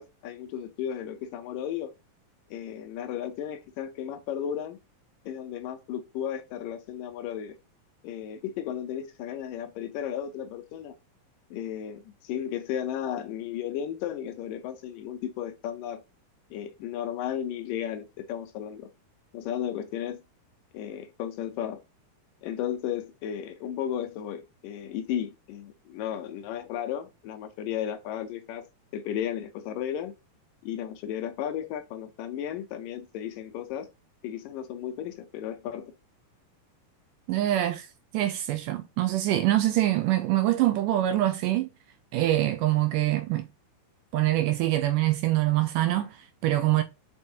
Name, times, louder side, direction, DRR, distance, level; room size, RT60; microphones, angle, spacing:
voice 1, 0.0-1.9 2.5-4.8 5.3-7.6 8.0-11.0 11.5-16.0 16.5-18.9 19.3-20.2 20.7-21.8 22.4-28.7 28.9-30.1 30.6-33.9 34.2-35.9, left 10 dB, 75° left, 2.2 m, -34 dB
voice 2, 37.3-37.9 38.1-41.7 42.1-43.5 44.1-46.8, right 14 dB, 80° right, 1.9 m, -24 dB
6.9 x 5.2 x 2.7 m
omnidirectional pair, 4.2 m